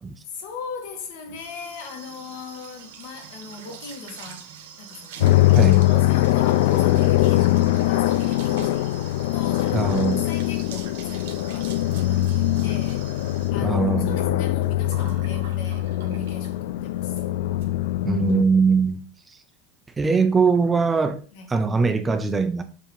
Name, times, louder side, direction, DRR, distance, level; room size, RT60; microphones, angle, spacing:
voice 1, 0.2-4.5 4.8-17.2 21.3-21.5, left 5 dB, 60° left, 1.5 m, -39 dB
sound 1, 0.9-16.6 17.0-17.3 17.6-17.7 18.0-18.3, right 8 dB, 80° right, 1.4 m, -44 dB
sound 2, 5.2-18.4, left 15 dB, 75° left, 0.4 m, -22 dB
voice 2, 9.7-10.2 13.6-14.4 18.0-19.1 20.0-21.2 21.5-22.6, right 4 dB, 10° right, 0.4 m, -21 dB
7.3 x 2.9 x 5.1 m
supercardioid pair, 165°, 0 cm